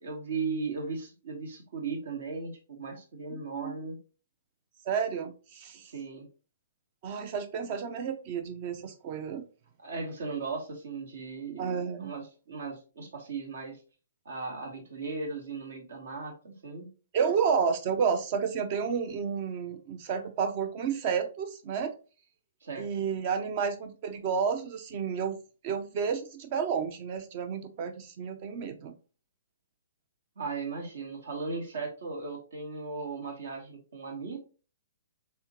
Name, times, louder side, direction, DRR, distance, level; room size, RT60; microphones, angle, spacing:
voice 1, 0.0-4.0 5.8-6.3 9.8-13.8 14.2-16.9 22.6-23.1 30.4-34.4, right 4 dB, 60° right, 2 dB, 1.3 m, -37 dB
voice 2, 3.3-3.7 4.9-5.9 7.0-9.5 11.6-12.1 17.1-21.9 22.8-25.3 25.6-28.9, right 6 dB, 40° right, 8 dB, 0.6 m, -31 dB
3.5 x 3.5 x 2.9 m, 0.36 s
figure-of-eight pair, 125°, 0 cm